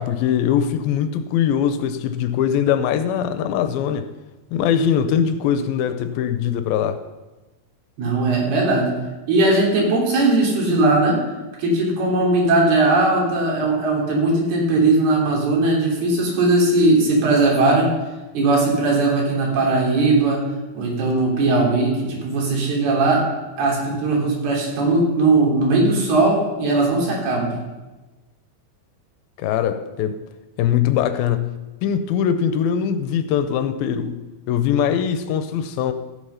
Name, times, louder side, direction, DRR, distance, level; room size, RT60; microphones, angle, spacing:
voice 1, 0.0-4.1 4.5-7.0 29.4-30.2 30.6-34.2 34.5-35.9, left 8 dB, 80° left, 2.4 m, -21 dB
voice 2, 8.0-9.0 9.3-11.2 11.6-17.9 18.3-20.4 20.7-23.2 23.6-27.6, right 2 dB, 90° right, 5.1 m, -19 dB
15.0 x 8.2 x 5.7 m
omnidirectional pair, 4.4 m